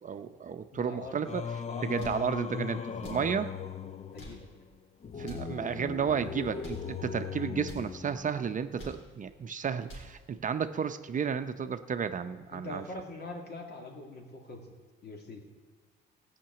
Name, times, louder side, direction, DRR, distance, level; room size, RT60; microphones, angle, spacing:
voice 1, 0.0-1.4 1.8-3.5 5.2-12.8, right 7 dB, 40° right, 9 dB, 0.6 m, -32 dB
voice 2, 0.7-1.2 1.6-2.1 4.1-4.5 12.5-14.7 15.0-15.4, left 2 dB, 55° left, 2 dB, 2.4 m, -43 dB
Singing, 1.2-8.6, left 6 dB, 35° left, 0.5 m, -38 dB
sound 1, 1.9-2.3 2.9-3.3 4.0-4.5 5.2-5.6 6.4-6.9 7.6-7.9 8.6-9.1 9.6-10.2, right 1 dB, 75° left, 3.8 m, -48 dB
15.0 x 5.9 x 8.9 m, 1.4 s
cardioid pair, 90°, 20 cm